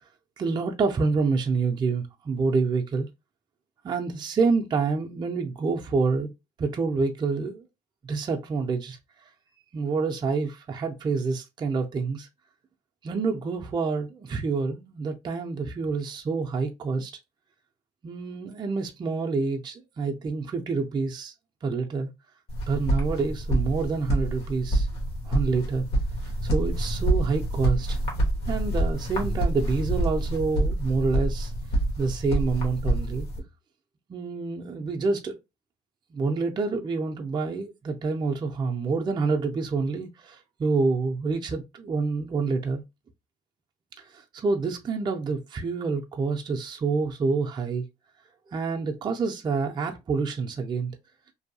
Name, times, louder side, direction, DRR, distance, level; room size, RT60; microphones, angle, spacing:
voice 1, 0.4-3.1 3.8-6.3 6.6-7.6 8.0-9.0 9.7-12.3 13.0-17.1 18.0-21.3 21.6-22.1 22.7-24.9 25.3-25.8 26.2-28.0 28.5-31.5 32.0-33.3 34.1-35.4 36.1-42.8 44.1-47.8 48.5-50.9, right 4 dB, 25° right, 0.4 m, -27 dB
sound 1, 22.5-33.4, right 1 dB, 75° left, 1.1 m, -27 dB
2.6 x 2.2 x 2.6 m
cardioid pair, 110°, 17 cm